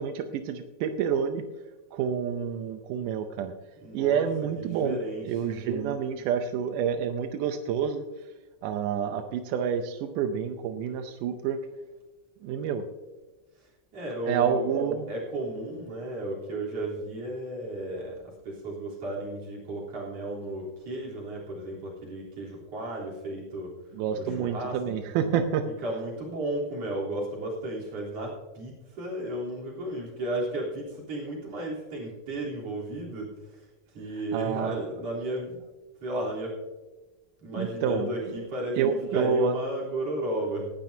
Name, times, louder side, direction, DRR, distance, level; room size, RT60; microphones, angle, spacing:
voice 1, 0.0-1.4 1.9-3.5 3.9-8.0 8.6-11.6 12.4-12.8 14.3-15.1 23.9-25.7 34.3-34.8 37.5-38.5 38.8-39.6, right 7 dB, 80° right, 7 dB, 1.9 m, -28 dB
voice 2, 3.8-4.3 4.6-5.6 13.6-14.7 15.1-23.7 24.1-24.8 25.8-33.7 33.9-35.6 36.0-36.6 37.4-40.7, right 1 dB, 45° right, -4 dB, 4.4 m, -34 dB
18.0 x 12.0 x 2.8 m, 1.2 s
omnidirectional pair, 4.4 m